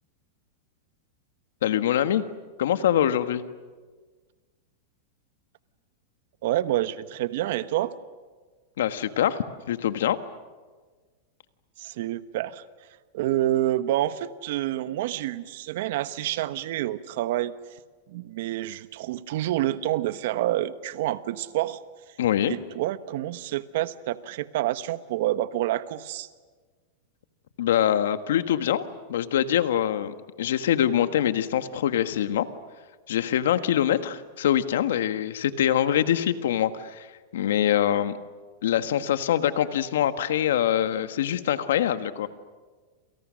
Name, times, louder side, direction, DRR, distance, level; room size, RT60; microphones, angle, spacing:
voice 1, 1.6-2.2 2.6-3.4 8.8-10.2 22.2-22.5 27.6-28.8 29.1-32.5 33.1-37.1 37.3-38.2 38.6-42.3, left 10 dB, 80° left, 11 dB, 1.5 m, -24 dB
voice 2, 6.4-7.9 11.8-12.6 13.1-17.5 18.1-21.8 22.5-26.3, right 14 dB, 65° right, 13 dB, 1.1 m, -28 dB
29.0 x 28.0 x 6.4 m, 1.4 s
supercardioid pair, 140°, 0 cm